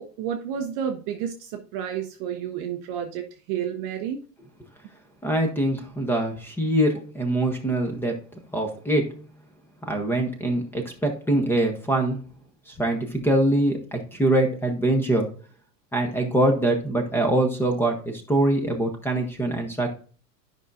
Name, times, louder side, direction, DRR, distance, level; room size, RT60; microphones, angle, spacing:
voice 1, 0.0-4.2, right 9 dB, 30° right, 4 dB, 0.5 m, -31 dB
voice 2, 5.2-8.2 8.5-9.2 9.9-12.2 12.7-15.3 15.9-19.9, right 1 dB, 5° left, 4 dB, 0.7 m, -23 dB
10.0 x 5.4 x 2.5 m, 0.38 s
hypercardioid pair, 135°, 49 cm